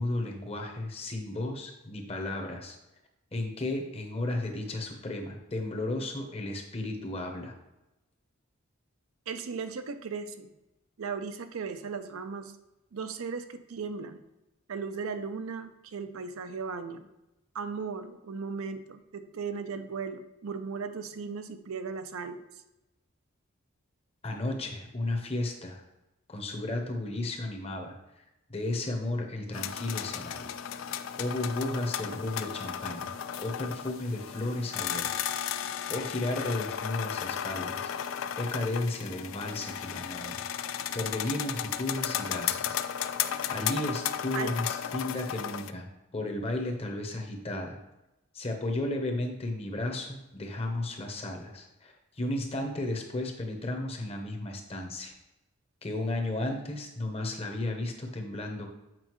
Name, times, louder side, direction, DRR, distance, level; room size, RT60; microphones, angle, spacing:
voice 1, 0.0-2.8 3.3-7.5 24.2-25.8 26.3-28.0 28.5-30.5 31.2-37.9 38.4-40.3 40.6-42.8 43.5-45.9 46.1-47.8 48.3-55.1 55.8-58.7, left 2 dB, 30° left, 3 dB, 0.8 m, -34 dB
voice 2, 9.3-10.5 11.0-12.5 12.9-14.2 14.7-17.1 17.5-22.4 44.3-44.6, right 5 dB, 85° right, 9 dB, 0.5 m, -37 dB
sound 1, 29.5-45.7, left 9 dB, 70° left, 0.3 m, -34 dB
7.6 x 5.0 x 3.0 m, 0.95 s
head